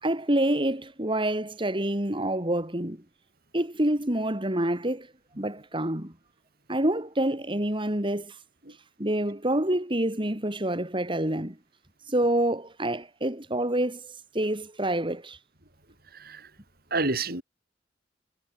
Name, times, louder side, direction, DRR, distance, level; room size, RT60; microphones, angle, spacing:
voice 1, 0.0-3.0 3.5-5.1 5.4-6.1 6.7-8.4 9.0-11.6 12.1-15.4, right 1 dB, 30° right, 3.7 m, -27 dB
voice 2, 16.1-16.5 16.9-17.4, right 3 dB, 55° right, 6.2 m, -29 dB
head